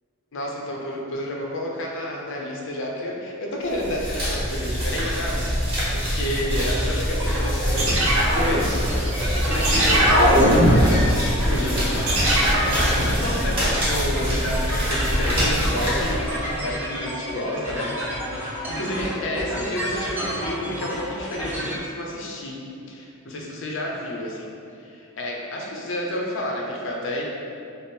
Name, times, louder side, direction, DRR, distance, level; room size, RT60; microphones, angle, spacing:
voice 1, 0.3-16.3 16.6-17.9 18.3-22.6 22.9-27.2, left 1 dB, 60° left, -2 dB, 0.6 m, -30 dB
sound 1, 3.7-16.6, equal, 25° right, 1.3 m, -24 dB
sound 2, 7.1-21.8, equal, 10° right, 0.6 m, -31 dB
sound 3, 7.8-9.1 9.6-11.2 12.1-12.8, equal, 70° right, 0.6 m, -19 dB
3.4 x 2.0 x 4.1 m, 2.5 s
head